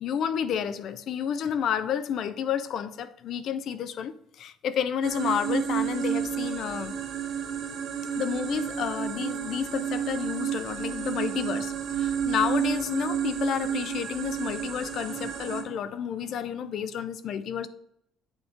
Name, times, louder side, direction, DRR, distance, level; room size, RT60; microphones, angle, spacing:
voice 1, 0.0-6.9 8.2-17.7, left 8 dB, 55° left, 0.5 m, -30 dB
sound 1, 5.0-15.6, right 9 dB, 65° right, 1.7 m, -31 dB
8.0 x 3.6 x 4.4 m
cardioid pair, 145°, 0 cm